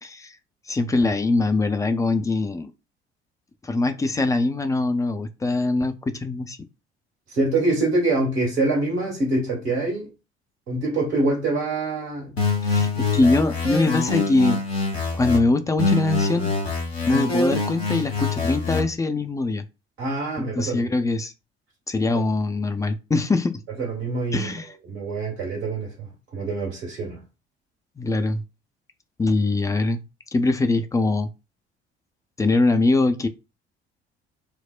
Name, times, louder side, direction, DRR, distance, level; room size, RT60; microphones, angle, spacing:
voice 1, 0.0-0.3 0.7-2.7 3.6-6.6 12.6-14.6 15.1-16.5 17.1-19.6 20.5-21.3 21.9-23.6 24.3-24.7 28.0-28.4 29.2-30.0 30.3-31.3 32.4-33.3, left 2 dB, 10° left, 0.3 m, -22 dB
voice 2, 7.3-10.1 10.7-12.4 20.0-21.0 23.8-24.5 24.8-27.2, right 2 dB, 80° right, 1.7 m, -25 dB
sound 1, 12.4-15.4 15.8-18.8, left 4 dB, 85° left, 0.8 m, -24 dB
4.4 x 2.0 x 2.4 m
figure-of-eight pair, 50°, 31 cm